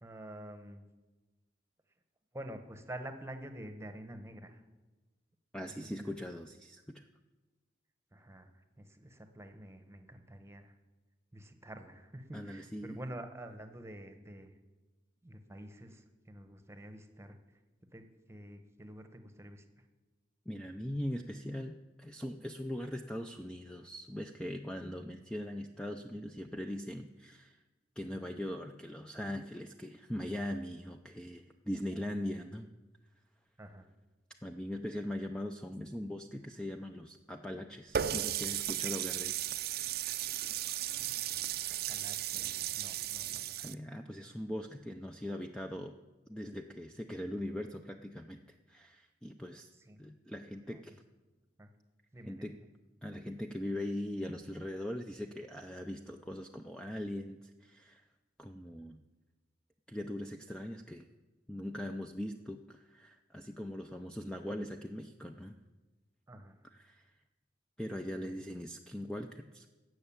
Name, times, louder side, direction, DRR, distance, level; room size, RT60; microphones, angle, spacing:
voice 1, 0.0-0.9 2.3-4.6 5.6-6.1 8.1-10.8 11.3-14.5 15.2-17.4 17.9-19.8 33.6-33.9 41.4-43.6 49.8-50.0 50.6-50.8 51.6-51.7 52.1-52.5 66.3-66.7 68.1-68.3, right 1 dB, 15° right, 8 dB, 1.1 m, -48 dB
voice 2, 5.5-7.1 12.3-13.0 20.5-27.6 28.0-32.7 34.4-39.5 43.6-46.0 46.3-48.4 48.7-49.7 50.0-51.0 52.2-52.6 53.0-58.1 58.4-59.0 59.9-61.1 61.5-65.6 66.7-67.1 67.8-69.7, left 1 dB, 5° left, 5 dB, 0.5 m, -41 dB
Water tap faucet, 37.9-43.7, right 11 dB, 60° right, 0.5 m, -35 dB
16.0 x 6.5 x 8.7 m, 1.2 s
head